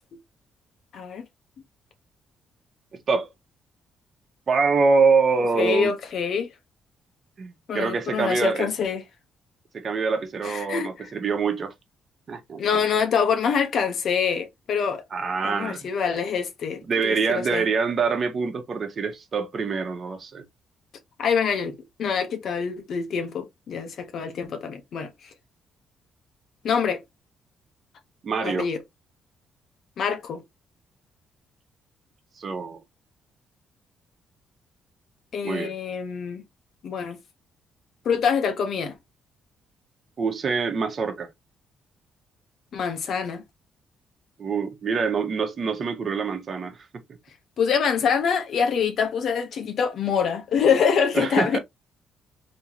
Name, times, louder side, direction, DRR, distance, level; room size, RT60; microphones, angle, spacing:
voice 1, 0.9-1.3 5.4-6.5 7.7-9.0 10.4-11.1 12.6-15.0 15.4-17.7 21.2-25.1 26.6-27.0 28.4-28.8 30.0-30.4 35.3-36.4 36.8-37.2 38.0-38.9 42.7-43.4 47.6-51.6, left 6 dB, 65° left, 1.0 m, -25 dB
voice 2, 4.5-5.9 7.4-8.7 9.7-11.7 12.3-12.8 15.1-15.9 16.9-20.4 28.2-28.7 32.4-32.8 35.4-35.7 40.2-41.3 44.4-46.8 51.1-51.6, right 4 dB, 45° right, 1.1 m, -25 dB
3.6 x 3.1 x 2.9 m
cardioid pair, 90°, 0 cm